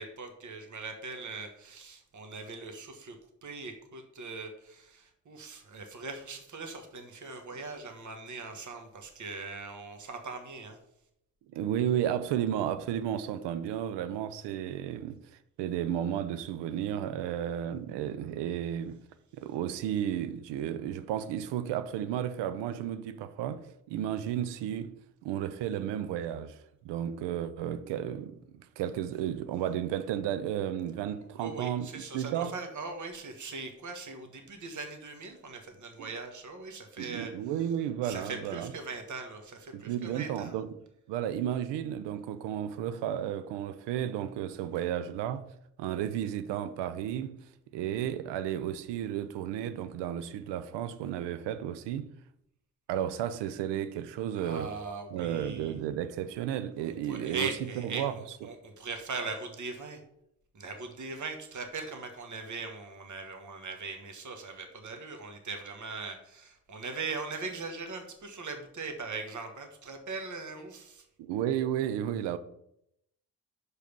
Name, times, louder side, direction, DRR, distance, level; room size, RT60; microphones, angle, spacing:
voice 1, 0.0-3.2 3.4-10.8 31.4-37.3 38.0-40.6 54.3-55.8 57.1-60.0 60.5-71.0, right 4 dB, 40° right, 1.5 m, -40 dB
voice 2, 11.5-15.2 15.6-19.0 19.3-24.9 25.2-26.6 26.8-32.6 37.0-38.7 39.7-40.7 41.1-45.5 45.8-52.1 52.9-54.7 55.1-57.5 57.8-58.1 71.2-72.4, right 10 dB, 70° right, 0.7 m, -33 dB
6.5 x 5.0 x 5.3 m
hypercardioid pair, 45°, 43 cm